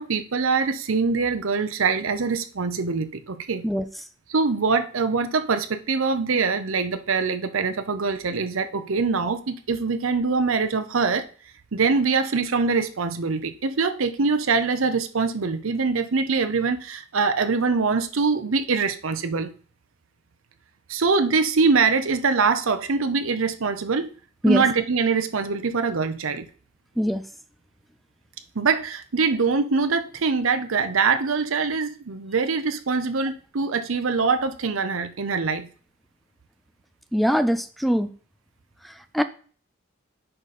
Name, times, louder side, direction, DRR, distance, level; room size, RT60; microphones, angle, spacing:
voice 1, 0.0-3.7 4.3-11.3 11.7-19.5 20.9-24.1 24.5-26.5 28.6-35.7, right 4 dB, 80° right, 0.7 m, -23 dB
voice 2, 37.1-38.1 39.1-39.2, equal, ahead, 0.4 m, -22 dB
8.8 x 5.0 x 4.2 m
head